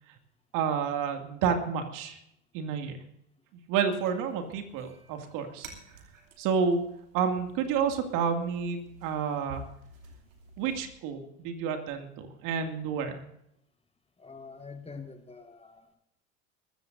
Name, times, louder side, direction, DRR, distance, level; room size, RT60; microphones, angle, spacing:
voice 1, 0.5-2.2 2.5-3.0 3.7-5.7 6.4-6.8 7.1-9.6 10.6-13.2, right 6 dB, 55° right, 5 dB, 2.4 m, -30 dB
sound 1, 3.9-10.9, right 2 dB, 80° right, 2.9 m, -51 dB
voice 2, 14.2-16.0, left 4 dB, 15° left, 6 dB, 1.9 m, -45 dB
22.5 x 14.5 x 2.7 m, 0.78 s
hypercardioid pair, 80°, 39 cm